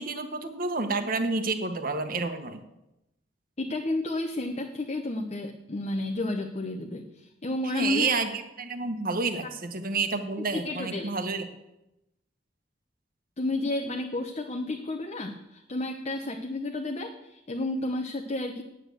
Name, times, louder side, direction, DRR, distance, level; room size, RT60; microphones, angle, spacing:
voice 1, 0.0-2.6 7.6-11.4, right 3 dB, 50° right, 7 dB, 1.3 m, -29 dB
voice 2, 3.6-8.1 10.5-11.1 13.4-18.6, left 2 dB, 35° left, 3 dB, 0.9 m, -31 dB
9.4 x 9.0 x 7.8 m, 0.91 s
head